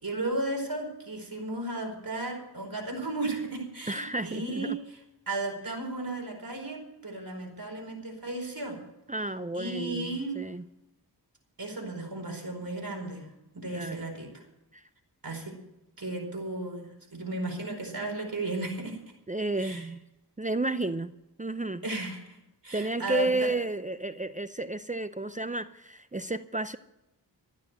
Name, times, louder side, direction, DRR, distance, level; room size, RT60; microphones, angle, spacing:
voice 1, 0.0-4.8 5.3-8.8 9.5-10.4 11.6-13.3 13.5-14.4 15.2-15.5 16.0-16.9 17.1-19.0 19.6-19.8 21.8-22.2 22.6-23.5, right 2 dB, 55° right, 2 dB, 4.7 m, -34 dB
voice 2, 3.9-4.8 5.7-5.8 9.1-10.7 13.7-14.0 14.7-14.8 19.3-20.0 20.4-21.1 21.4-21.8 22.7-26.8, right 2 dB, 20° right, 12 dB, 0.6 m, -32 dB
13.5 x 9.5 x 7.9 m, 0.90 s
cardioid pair, 45°, 42 cm